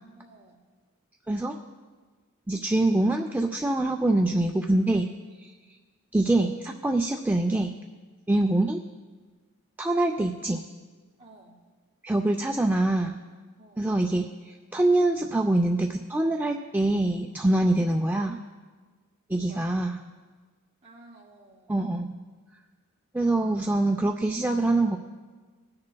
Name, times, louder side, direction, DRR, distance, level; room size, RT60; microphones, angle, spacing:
voice 1, 0.2-0.6 11.2-11.6 13.6-13.9 17.7-18.0 19.3-19.7 20.8-21.7, right 1 dB, 30° right, -6 dB, 2.5 m, -52 dB
voice 2, 2.5-5.1 6.1-7.7 8.3-8.8 9.8-10.6 12.0-13.2 13.8-18.4 19.3-20.0 21.7-22.2 23.1-25.0, right 2 dB, 10° right, 2 dB, 0.4 m, -24 dB
21.5 x 9.6 x 2.3 m, 1.4 s
head